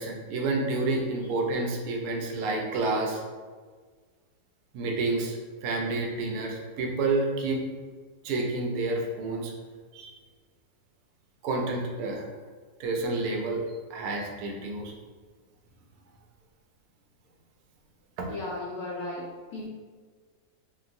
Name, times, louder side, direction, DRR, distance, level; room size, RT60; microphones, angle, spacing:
voice 1, 0.0-3.2 4.7-7.6 8.2-9.5 9.9-10.1 11.4-12.3 12.8-13.6 13.9-14.9 18.2-18.3, right 3 dB, 70° right, 0 dB, 0.9 m, -29 dB
voice 2, 18.3-19.7, left 2 dB, 65° left, -4 dB, 1.0 m, -36 dB
2.9 x 2.5 x 2.5 m, 1.5 s
omnidirectional pair, 1.9 m